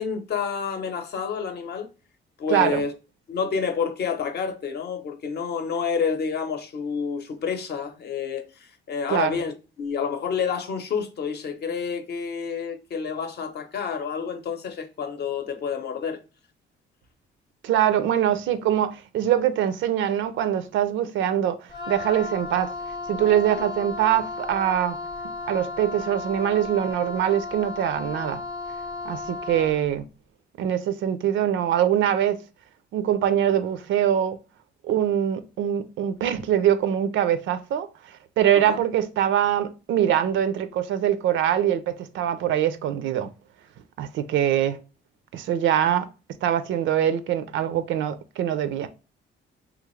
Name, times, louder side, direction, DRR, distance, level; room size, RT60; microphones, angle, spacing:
voice 1, 0.0-1.9 2.4-2.9 3.3-9.5 9.8-16.2 23.6-23.7 38.5-38.8, left 6 dB, 55° left, 0.7 m, -29 dB
voice 2, 2.5-2.8 9.1-9.4 17.6-22.7 23.1-25.0 25.5-28.4 29.1-30.1 30.6-32.4 32.9-34.4 34.8-43.3 44.0-44.8 45.3-46.1 46.4-48.9, right 10 dB, 75° right, 0.4 m, -23 dB
Wind instrument woodwind instrument, 21.7-29.9, left 3 dB, 25° left, 0.8 m, -34 dB
3.1 x 2.5 x 3.0 m
cardioid pair, 90°, 20 cm